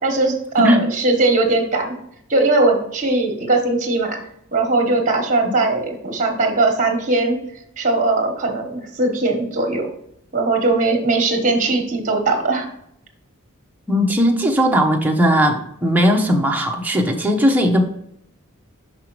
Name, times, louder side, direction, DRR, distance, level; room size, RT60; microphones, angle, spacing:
voice 1, 0.0-2.0 2.3-4.2 4.5-7.4 7.8-9.9 10.3-12.7, right 2 dB, 35° right, 3 dB, 1.3 m, -19 dB
voice 2, 13.9-17.8, equal, 10° right, 1 dB, 0.8 m, -17 dB
5.9 x 5.6 x 3.1 m, 0.73 s
head